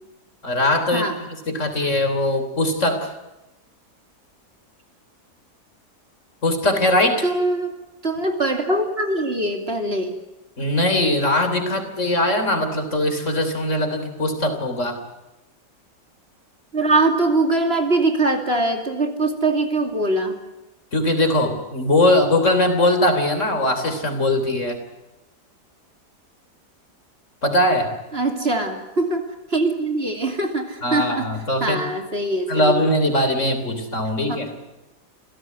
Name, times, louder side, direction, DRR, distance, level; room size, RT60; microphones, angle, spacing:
voice 1, 0.4-1.1 1.5-3.1 6.4-7.3 10.6-15.0 20.9-24.8 27.4-27.9 30.8-31.8 32.5-34.5, left 1 dB, 45° left, 7 dB, 3.7 m, -20 dB
voice 2, 7.2-7.8 8.0-10.1 16.7-20.4 28.1-31.3 31.6-32.8, right 2 dB, 35° right, 5 dB, 2.9 m, -22 dB
28.5 x 16.5 x 9.4 m, 0.99 s
omnidirectional pair, 1.8 m